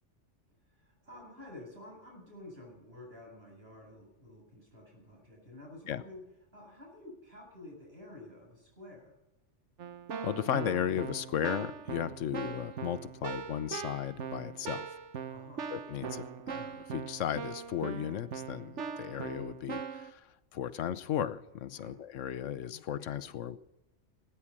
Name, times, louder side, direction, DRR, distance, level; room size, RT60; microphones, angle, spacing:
voice 1, 0.7-6.2 6.5-9.2 15.3-15.7 21.7-22.0, left 1 dB, 55° right, -1 dB, 7.9 m, -50 dB
Keyboard (musical), 9.8-20.1, right 6 dB, 70° right, 1.3 m, -41 dB
voice 2, 10.2-14.9 15.7-23.6, left 10 dB, 85° left, 15 dB, 1.1 m, -35 dB
18.5 x 9.9 x 7.3 m, 0.96 s
omnidirectional pair, 1.2 m